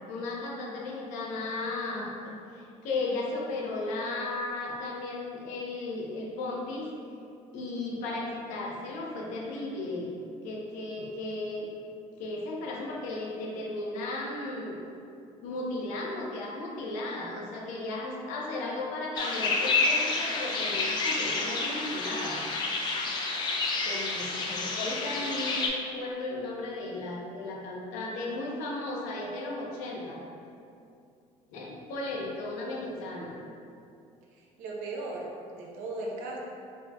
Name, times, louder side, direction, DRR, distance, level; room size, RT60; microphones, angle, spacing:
voice 1, 0.1-6.9 7.5-10.1 10.4-11.7 12.2-14.8 15.4-22.4 23.8-30.2 31.5-33.3, left 2 dB, 80° left, -3 dB, 0.9 m, -35 dB
sound 1, 19.2-25.7, left 3 dB, 35° left, 0.5 m, -29 dB
voice 2, 24.5-25.0 32.5-33.3 34.3-36.4, right 2 dB, 90° right, -2 dB, 0.8 m, -39 dB
4.8 x 4.1 x 2.3 m, 2.5 s
cardioid pair, 170°, 13 cm